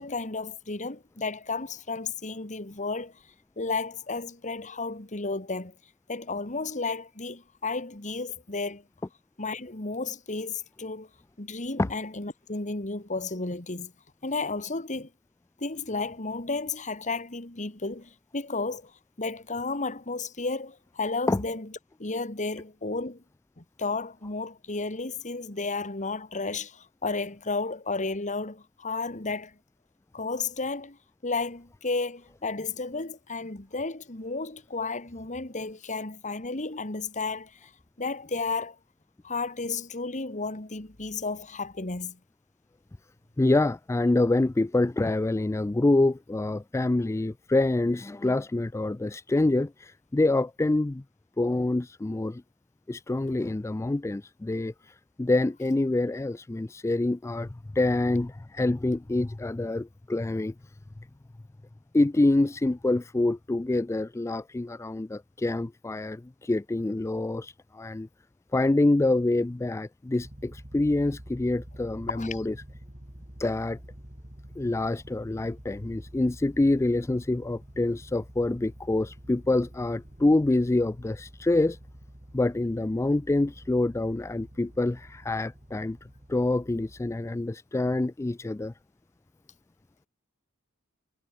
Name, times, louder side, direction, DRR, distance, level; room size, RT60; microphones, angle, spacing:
voice 1, 0.0-3.2 3.6-5.7 6.1-8.8 9.4-11.1 11.4-13.9 14.2-15.1 15.6-18.9 19.2-21.7 22.0-23.2 23.6-29.6 30.1-31.0 31.2-37.7 38.0-38.8 39.2-42.2 72.1-72.4, left 3 dB, 35° left, 2.1 m, -33 dB
voice 2, 43.4-51.0 51.4-52.4 52.9-60.5 61.9-68.1 68.5-72.5 73.4-73.8 74.6-81.8 82.3-86.0 86.3-88.7, left 2 dB, 10° left, 0.3 m, -26 dB
sound 1, 70.2-87.2, equal, 30° right, 3.0 m, -48 dB
head